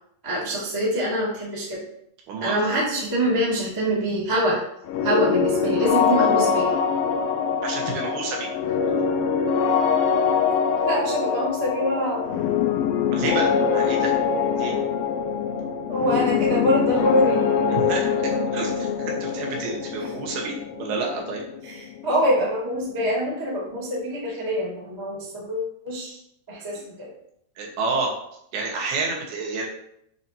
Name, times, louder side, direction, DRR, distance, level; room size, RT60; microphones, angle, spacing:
voice 1, 0.2-1.8 2.4-4.6 5.0-6.8 10.7-12.4 15.9-17.4 21.6-26.2 26.5-27.1, equal, 20° right, -7 dB, 0.5 m, -24 dB
voice 2, 2.3-2.8 7.6-8.5 13.1-14.2 14.6-14.7 17.7-21.4 27.6-28.1 28.5-29.7, right 3 dB, 80° right, 0 dB, 3.1 m, -29 dB
sound 1, 4.9-22.5, left 6 dB, 80° left, 2.3 m, -24 dB
8.0 x 2.8 x 4.2 m, 0.73 s
omnidirectional pair, 4.4 m